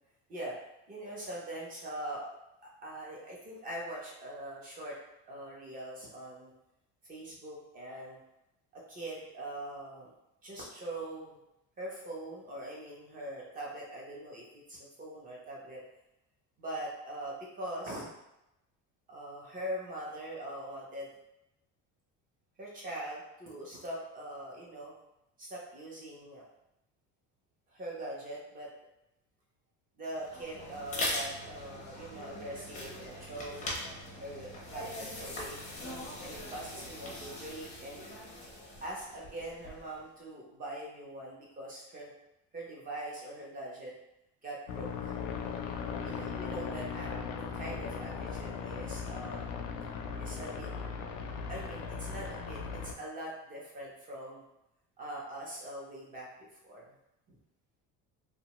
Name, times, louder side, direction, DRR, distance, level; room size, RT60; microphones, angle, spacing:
voice 1, 0.9-2.3 2.8-5.0 5.3-6.5 7.0-8.2 8.7-10.1 10.4-11.4 11.8-15.8 16.6-18.1 19.1-21.1 22.6-24.9 25.4-26.4 27.7-28.7 30.0-33.7 34.2-35.7 36.2-38.1 38.8-42.1 42.5-43.9 44.4-45.1 46.0-49.5 50.2-50.7 51.5-54.4 55.0-57.0 57.3-57.4, right 1 dB, 25° right, -4 dB, 0.6 m, -42 dB
sound 1, 30.1-40.0, left 1 dB, 25° left, 0.5 m, -41 dB
sound 2, 44.7-52.9, left 6 dB, 75° left, 0.5 m, -38 dB
2.9 x 2.2 x 2.9 m, 0.88 s
cardioid pair, 175°, 33 cm